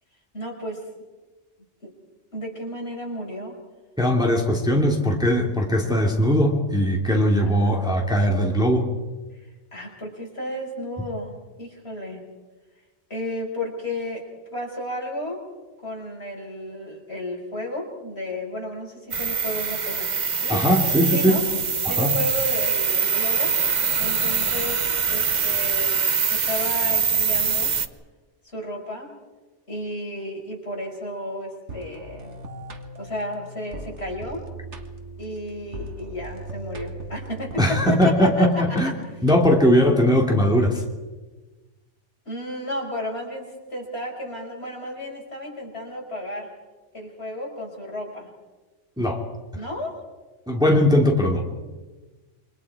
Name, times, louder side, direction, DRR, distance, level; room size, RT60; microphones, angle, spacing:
voice 1, 0.3-0.8 1.8-1.9 2.3-3.6 7.5-7.8 9.7-12.2 13.1-14.2 14.5-15.5 15.8-20.6 21.1-21.4 21.9-23.6 24.0-27.7 28.4-29.1 29.7-32.3 33.0-34.4 35.2-38.8 42.3-46.5 46.9-48.3 49.5-50.0, left 1 dB, 60° left, -1 dB, 5.8 m, -33 dB
voice 2, 4.0-8.9 20.5-21.4 21.8-22.1 37.6-38.9 39.2-40.8 49.0-49.2 50.5-51.4, equal, 5° right, 0 dB, 2.5 m, -20 dB
sound 1, 19.1-27.9, right 6 dB, 40° right, 0.9 m, -23 dB
sound 2, 31.7-39.8, right 2 dB, 70° right, 2.0 m, -39 dB
27.5 x 24.5 x 4.9 m, 1.2 s
omnidirectional pair, 1.2 m